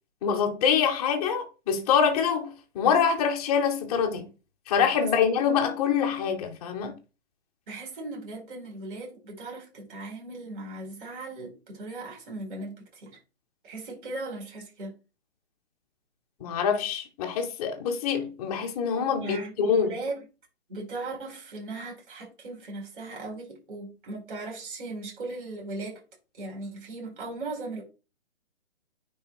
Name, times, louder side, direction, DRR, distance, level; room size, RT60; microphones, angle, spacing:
voice 1, 0.2-4.3 4.7-6.9 16.4-19.9, left 7 dB, 5° left, 0.4 m, -25 dB
voice 2, 7.7-13.2 13.6-14.9 19.2-20.2 20.7-26.0 26.3-27.8, right 2 dB, 50° right, 4.9 m, -38 dB
9.4 x 3.3 x 4.5 m
figure-of-eight pair, 135°, 34 cm